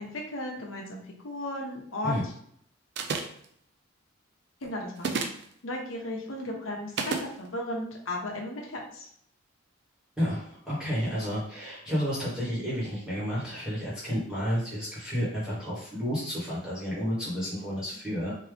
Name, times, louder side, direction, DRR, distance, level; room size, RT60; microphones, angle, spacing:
voice 1, 0.0-2.1 4.6-5.3 5.6-9.1 12.5-12.6, left 1 dB, 80° left, 0 dB, 0.9 m, -35 dB
sound 1, 3.0-3.5 5.0-5.5 7.0-7.3, right 4 dB, 55° right, 0.4 m, -30 dB
voice 2, 10.2-18.3, equal, 5° right, -8 dB, 1.3 m, -31 dB
3.5 x 2.8 x 3.3 m, 0.67 s
head